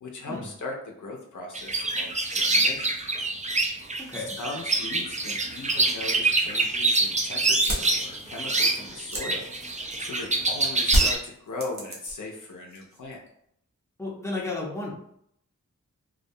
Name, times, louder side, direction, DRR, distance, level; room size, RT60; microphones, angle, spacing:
voice 1, 0.0-2.9 4.1-13.2, left 2 dB, 70° left, 0 dB, 0.5 m, -38 dB
sound 1, 1.6-11.2, right 2 dB, 25° right, 0.3 m, -26 dB
voice 2, 4.0-4.4 14.0-14.9, left 2 dB, 10° left, -3 dB, 0.7 m, -33 dB
sound 2, 7.6-10.2 10.8-12.4 12.7-13.3, equal, 60° right, 0.8 m, -29 dB
2.3 x 2.2 x 2.6 m, 0.72 s
wide cardioid pair, 60°, 32 cm